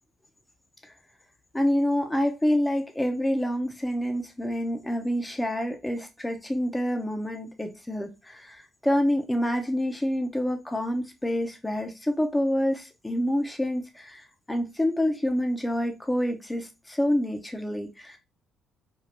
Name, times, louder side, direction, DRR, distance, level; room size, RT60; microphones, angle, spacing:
voice 1, 1.5-18.2, equal, 15° left, 0.8 m, -27 dB
3.6 x 2.3 x 2.7 m
hypercardioid pair, 50°, 0 cm